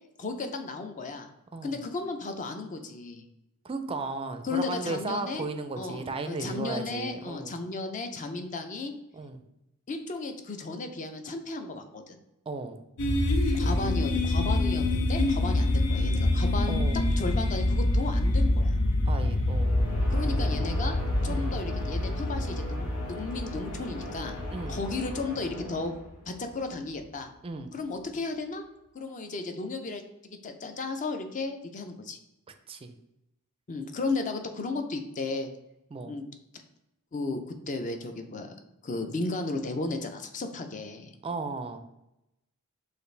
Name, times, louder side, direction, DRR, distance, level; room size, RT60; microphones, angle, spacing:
voice 1, 0.2-1.3 1.6-3.2 4.4-5.5 5.8-8.9 9.9-12.2 13.5-16.8 17.2-18.7 20.1-21.0 21.2-24.4 24.7-25.9 26.3-27.3 27.7-28.6 28.9-32.2 33.7-35.5 36.0-36.2 37.1-38.5 38.8-41.1, left 3 dB, 35° left, 6 dB, 0.5 m, -34 dB
voice 2, 1.5-1.8 3.6-7.6 9.1-9.4 12.5-12.8 16.7-17.1 19.1-20.1 21.3-21.6 24.5-24.8 27.4-27.7 32.7-32.9 35.9-36.1 41.2-41.8, right 3 dB, 25° right, 8 dB, 0.4 m, -35 dB
sound 1, 13.0-25.9, left 1 dB, 90° left, 0.6 m, -26 dB
sound 2, 19.4-26.3, left 1 dB, 65° left, 1.6 m, -40 dB
6.6 x 2.5 x 3.2 m, 0.89 s
head